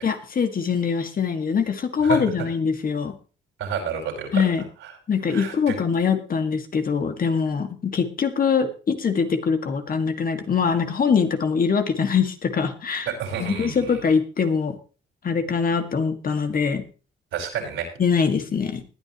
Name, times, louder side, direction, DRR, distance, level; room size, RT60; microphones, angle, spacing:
voice 1, 0.0-3.1 4.3-4.6 5.1-13.1 13.4-14.8 15.2-16.9 18.0-18.8, left 6 dB, 45° left, 7 dB, 2.0 m, -23 dB
voice 2, 3.6-4.4 4.8-4.9 5.3-5.8 13.1-14.0 17.3-17.9, right 7 dB, 85° right, 0 dB, 5.3 m, -30 dB
20.5 x 9.4 x 3.0 m, 0.36 s
cardioid pair, 90°, 20 cm